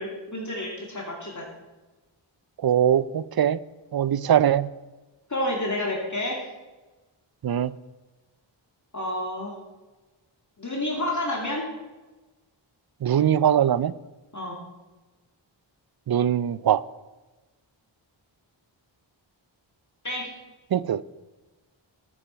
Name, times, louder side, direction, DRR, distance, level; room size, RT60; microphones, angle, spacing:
voice 1, 0.0-1.5 5.3-6.4 8.9-9.5 10.6-11.7 14.3-14.6 20.0-20.3, left 1 dB, 40° left, -1 dB, 2.4 m, -29 dB
voice 2, 2.6-3.6 3.9-4.7 7.4-7.7 13.0-13.9 16.1-16.8 20.7-21.0, right 9 dB, 55° right, 19 dB, 0.5 m, -21 dB
11.0 x 9.2 x 5.7 m, 1.2 s
wide cardioid pair, 65°, 47 cm